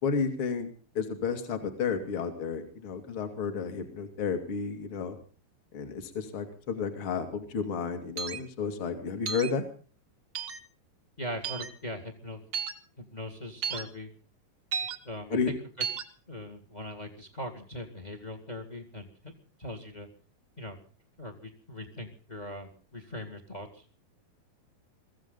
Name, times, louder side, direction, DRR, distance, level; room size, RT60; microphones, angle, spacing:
voice 1, 0.0-0.7 0.9-5.2 5.7-9.6 15.3-15.5, left 5 dB, 40° left, 6 dB, 2.7 m, -32 dB
sound 1, 8.2-8.4 9.3-9.5 10.3-10.6 11.4-11.7 12.5-12.7 13.6-13.8 14.7-15.0 15.8-16.0, right 6 dB, 70° right, 1.0 m, -33 dB
voice 2, 11.2-12.4 13.0-14.1 15.0-15.4 15.8-15.9 16.3-19.3 19.6-20.1 20.6-20.8 21.2-23.8, left 1 dB, 20° left, 6 dB, 1.2 m, -40 dB
23.5 x 15.5 x 3.9 m, 0.38 s
omnidirectional pair, 4.2 m